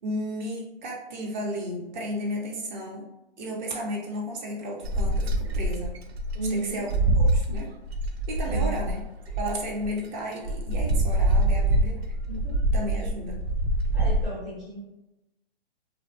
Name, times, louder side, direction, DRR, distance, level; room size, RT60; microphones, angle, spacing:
voice 1, 0.0-3.1 3.4-6.0 6.5-7.7 8.3-9.0 9.3-12.1 12.7-13.4, equal, 45° right, -1 dB, 0.7 m, -33 dB
sound 1, 4.8-9.9 10.4-14.2, right 1 dB, 85° right, 0.5 m, -25 dB
voice 2, 6.3-6.8 8.4-8.8 12.3-12.6 13.9-14.8, right 1 dB, ahead, -10 dB, 0.4 m, -34 dB
2.5 x 2.1 x 2.4 m, 0.94 s
hypercardioid pair, 130°, 31 cm